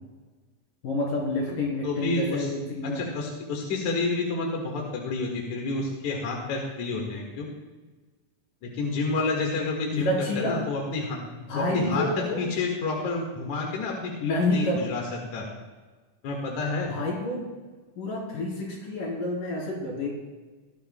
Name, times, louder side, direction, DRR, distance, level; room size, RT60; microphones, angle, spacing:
voice 1, 0.8-3.0 9.9-10.6 11.5-12.4 14.2-14.8 16.9-17.4 18.0-20.1, left 2 dB, 80° left, -3 dB, 5.2 m, -28 dB
voice 2, 1.8-2.5 2.9-7.5 8.6-11.2 11.6-15.0 15.3-15.5 16.2-16.9, left 3 dB, 65° left, -1 dB, 2.9 m, -29 dB
19.5 x 12.5 x 2.2 m, 1.3 s
omnidirectional pair, 3.8 m